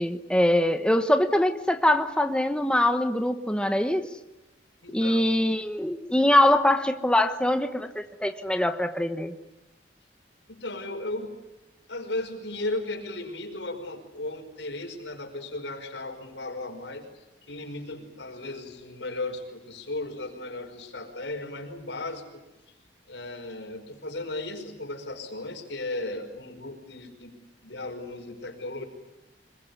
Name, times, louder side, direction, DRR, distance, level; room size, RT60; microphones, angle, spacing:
voice 1, 0.0-4.0 4.9-9.3, left 1 dB, 5° left, 8 dB, 1.1 m, -23 dB
voice 2, 4.8-5.3 10.5-11.4 11.9-22.4 23.1-27.3 27.6-28.8, left 2 dB, 85° left, 5 dB, 5.3 m, -36 dB
26.0 x 22.5 x 9.7 m, 0.97 s
head